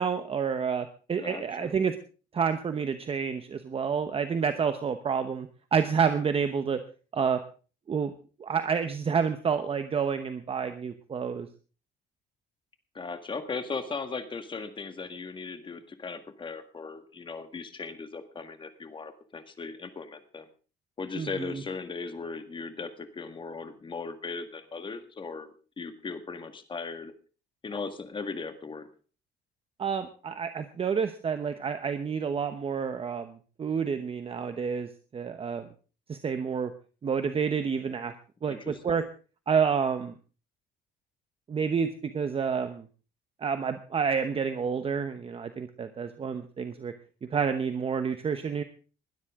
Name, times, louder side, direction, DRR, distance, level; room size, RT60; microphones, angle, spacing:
voice 1, 0.0-1.9 2.3-6.8 7.1-7.4 7.9-8.1 8.4-11.5 21.2-21.6 29.8-35.7 36.1-36.7 37.0-38.1 38.4-39.0 39.5-40.2 41.5-41.9 42.1-42.8 43.4-46.9 47.3-48.6, right 6 dB, 30° right, 9 dB, 1.0 m, -29 dB
voice 2, 1.2-1.8 12.9-20.4 21.0-27.1 27.6-28.9 38.5-39.0, left 4 dB, 25° left, 9 dB, 1.8 m, -38 dB
20.5 x 12.5 x 3.7 m, 0.37 s
cardioid pair, 135°, 19 cm